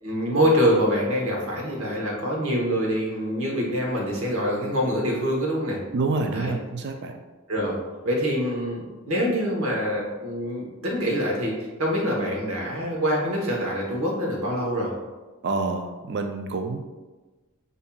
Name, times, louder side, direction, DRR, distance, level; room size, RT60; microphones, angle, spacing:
voice 1, 0.0-5.8 6.3-6.5 7.5-7.8 8.0-14.9, equal, 70° right, -2 dB, 1.1 m, -25 dB
voice 2, 5.9-7.2 15.4-16.8, right 3 dB, 50° right, 5 dB, 0.4 m, -27 dB
7.0 x 2.7 x 2.3 m, 1.2 s
head